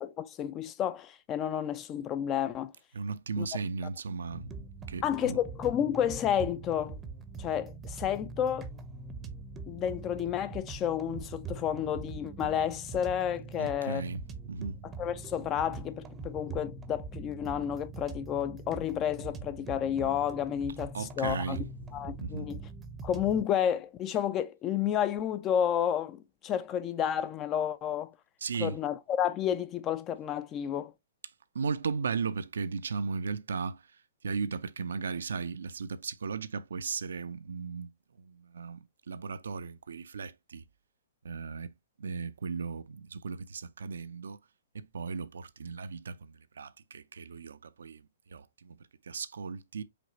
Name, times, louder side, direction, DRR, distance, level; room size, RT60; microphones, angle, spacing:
voice 1, 0.0-2.7 3.4-3.5 5.0-7.0 7.4-8.7 9.7-14.0 15.0-21.6 21.9-22.6 23.0-28.1 28.6-30.9, left 9 dB, 25° left, 0.4 m, -31 dB
voice 2, 2.9-5.4 13.6-14.8 20.9-21.7 22.2-22.5 28.4-28.8 31.5-33.8 34.2-40.6 41.2-41.7 42.0-44.4 44.7-48.0 48.3-48.8 49.0-49.8, right 5 dB, 70° right, 0.5 m, -36 dB
sound 1, 4.3-23.4, right 4 dB, 15° right, 0.7 m, -43 dB
5.1 x 3.1 x 2.9 m
figure-of-eight pair, 120°, 0 cm